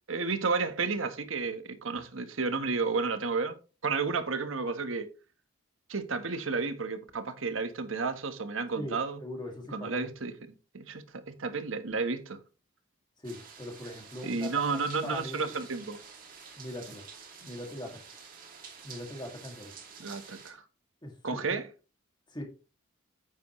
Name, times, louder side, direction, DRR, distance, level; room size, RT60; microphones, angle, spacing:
voice 1, 0.1-3.6 3.8-5.1 5.9-9.2 9.7-10.3 10.7-12.4 14.2-16.0 20.0-20.6 21.2-21.7, right 4 dB, 80° right, 1.3 m, -32 dB
voice 2, 8.7-10.1 13.2-15.6 16.6-17.1 17.4-18.0 18.8-19.7 21.0-21.6 22.3-22.4, left 1 dB, 20° left, 2.3 m, -41 dB
sound 1, 13.2-20.5, right 6 dB, 45° right, 2.5 m, -49 dB
9.5 x 8.2 x 3.1 m
head